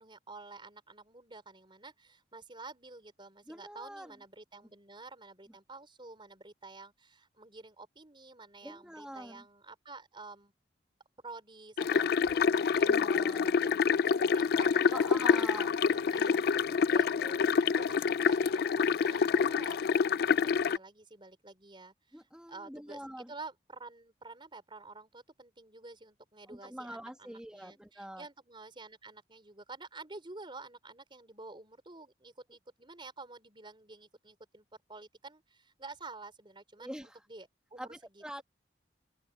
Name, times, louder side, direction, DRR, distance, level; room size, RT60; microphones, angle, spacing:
voice 1, 0.0-10.5 11.2-15.7 15.9-16.4 16.9-17.4 17.7-23.0 23.3-38.4, right 3 dB, 30° right, 4.2 m, -50 dB
voice 2, 3.5-4.1 8.6-9.4 12.8-13.5 14.9-15.7 16.1-16.8 22.1-23.3 26.5-28.3 36.8-37.3 37.8-38.4, right 1 dB, 5° right, 1.3 m, -45 dB
sound 1, 11.8-20.8, left 6 dB, 60° left, 0.4 m, -27 dB
open air
head